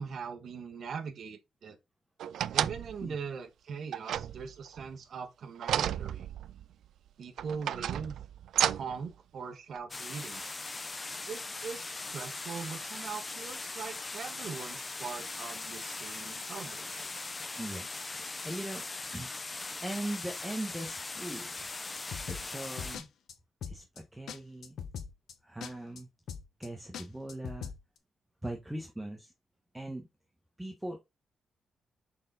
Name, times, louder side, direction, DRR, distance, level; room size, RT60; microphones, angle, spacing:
voice 1, 0.0-1.8 2.5-6.3 7.2-8.1 8.7-10.5 11.3-17.1, right 6 dB, 60° right, 1.3 m, -41 dB
sound 1, 2.2-3.1 3.9-4.9 5.6-6.7 7.4-9.0 9.7-9.8, right 10 dB, 85° right, 0.3 m, -32 dB
sound 2, 9.9-23.0, left 3 dB, 25° left, 0.6 m, -40 dB
voice 2, 17.6-17.9 18.4-18.8 19.1-19.3 19.8-21.5 22.3-23.1 23.7-24.8 25.4-26.1 26.6-27.7 28.4-29.3 29.7-30.1 30.6-31.0, right 1 dB, 10° right, 1.1 m, -39 dB
sound 3, 21.9-23.0 23.3-23.4 23.6-24.0 24.3-24.4 24.6-25.3 25.6-25.7 26.0-26.1 26.3-26.7 26.9-27.8, left 7 dB, 75° left, 1.0 m, -41 dB
6.3 x 4.4 x 3.9 m
cardioid pair, 120°, 0 cm